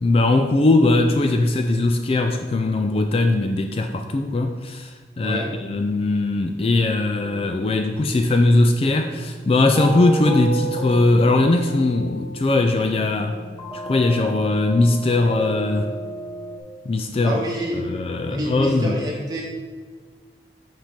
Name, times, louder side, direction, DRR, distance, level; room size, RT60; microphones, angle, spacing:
voice 1, 0.0-13.4 13.7-15.9 16.9-17.4 17.7-19.0, left 2 dB, 35° left, 6 dB, 0.3 m, -20 dB
sound 1, 7.2-16.6, right 2 dB, 15° left, 0.8 m, -34 dB
voice 2, 17.2-17.8 18.3-19.4, equal, 25° right, -2 dB, 1.3 m, -27 dB
5.9 x 5.1 x 5.1 m, 1.4 s
head